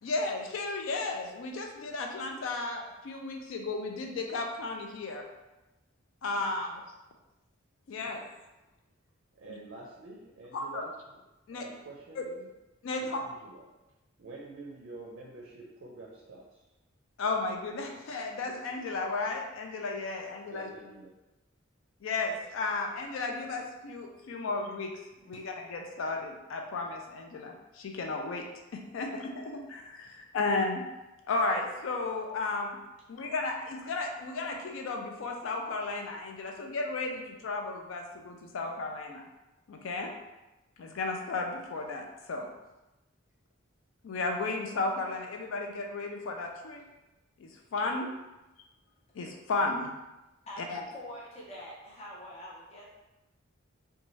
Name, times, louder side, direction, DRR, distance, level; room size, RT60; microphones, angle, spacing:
voice 1, 0.0-5.2 6.2-6.8 7.9-8.2 9.5-9.6 10.5-10.8 11.5-11.7 12.2-12.3 12.8-13.2 17.2-20.7 22.0-24.9 25.3-28.5 28.7-30.8 31.3-32.8 33.1-39.2 39.7-40.1 40.8-42.5 44.0-46.8 47.4-48.1 49.1-50.0 50.6-50.8, left 3 dB, 70° left, 2 dB, 0.4 m, -34 dB
voice 2, 9.3-10.9 11.5-12.5 13.0-13.7 14.2-16.6 20.5-21.1 30.0-30.2, right 2 dB, 65° right, -2 dB, 0.5 m, -48 dB
voice 3, 50.5-52.9, equal, 35° left, -5 dB, 0.7 m, -45 dB
2.7 x 2.2 x 3.0 m, 1.0 s
head